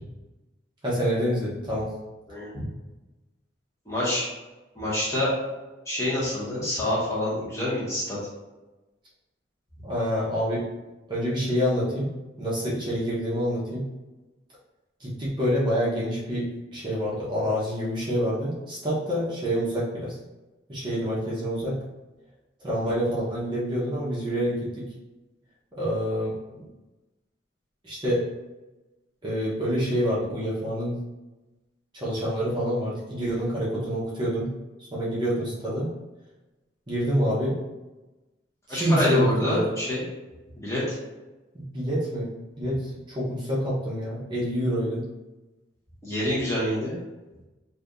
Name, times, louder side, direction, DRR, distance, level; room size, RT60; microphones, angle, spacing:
voice 1, 0.8-1.9 9.8-10.6 11.1-12.1 12.4-13.8 15.0-16.5 16.7-20.2 20.7-21.8 22.6-24.8 25.8-26.6 27.8-28.2 29.2-31.0 31.9-34.5 34.8-35.9 36.9-37.6 38.7-39.7 41.5-42.3 42.6-45.0, equal, 25° right, -7 dB, 0.8 m, -27 dB
voice 2, 2.3-2.7 3.9-4.3 4.7-5.3 5.9-8.2 38.7-40.0 40.6-41.0 46.0-47.0, left 1 dB, 15° left, -8 dB, 1.1 m, -27 dB
2.7 x 2.6 x 3.6 m, 1.1 s
head